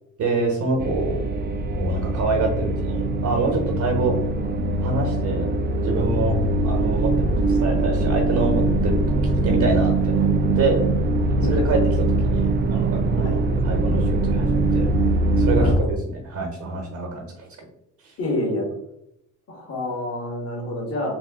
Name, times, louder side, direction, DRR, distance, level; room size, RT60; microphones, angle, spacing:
voice 1, 0.2-1.2 1.7-4.2 4.8-5.5 5.8-6.3 6.6-10.8 11.5-11.8 12.2-13.4 13.6-14.9 15.4-17.2, right 3 dB, 70° right, 1 dB, 1.0 m, -26 dB
sound 1, 0.8-15.8, right 2 dB, 35° right, 0.4 m, -22 dB
voice 2, 11.3-11.7 13.1-13.4 15.6-15.9 18.2-18.7 19.5-21.1, left 1 dB, 50° left, 0 dB, 1.5 m, -28 dB
3.3 x 2.6 x 3.5 m, 0.80 s
cardioid pair, 90°, 30 cm